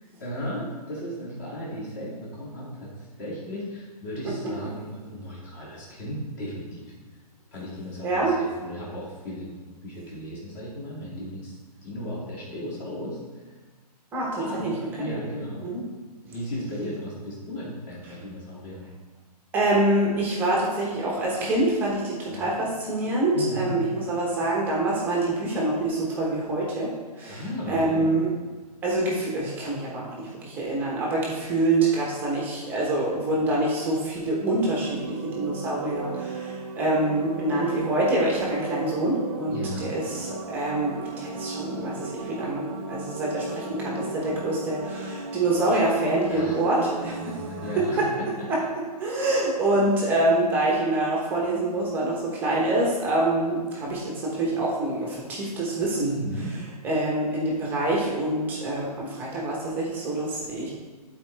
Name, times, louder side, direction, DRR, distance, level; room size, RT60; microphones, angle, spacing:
voice 1, 0.2-2.9 3.2-6.9 7.5-13.4 14.3-15.6 16.3-18.9 22.3-22.5 23.3-23.8 27.3-28.1 39.5-39.9 46.3-46.6 47.3-48.5 56.0-56.5, equal, 25° left, -6 dB, 2.2 m, -35 dB
voice 2, 8.0-8.3 14.1-14.7 15.0-15.1 15.6-15.8 19.5-26.9 27.2-28.3 28.8-47.3 48.0-48.1 48.5-48.6 49.0-56.1 56.8-60.7, right 2 dB, 10° right, -4 dB, 1.0 m, -26 dB
sound 1, 34.5-48.2, right 4 dB, 40° right, 0.7 m, -36 dB
11.5 x 4.4 x 3.3 m, 1.4 s
hypercardioid pair, 165°, 21 cm